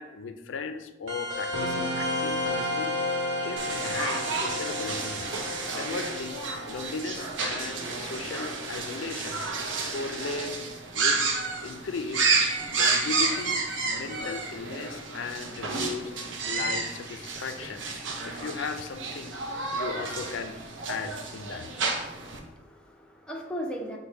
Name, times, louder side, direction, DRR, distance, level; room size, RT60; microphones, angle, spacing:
voice 1, 0.0-3.0 3.4-5.3 5.7-9.4 9.9-10.6 10.9-11.3 11.6-12.3 12.7-16.1 16.5-17.9 18.2-19.4 19.7-20.6 20.9-21.7, left 4 dB, 75° left, 8 dB, 0.4 m, -36 dB
sound 1, 1.1-8.2, left 1 dB, 90° right, 1.0 m, -32 dB
sound 2, 3.6-22.4, right 4 dB, 70° right, 0.6 m, -31 dB
voice 2, 21.9-24.0, equal, 5° left, 0 dB, 0.5 m, -38 dB
5.3 x 2.2 x 4.5 m, 1.1 s
head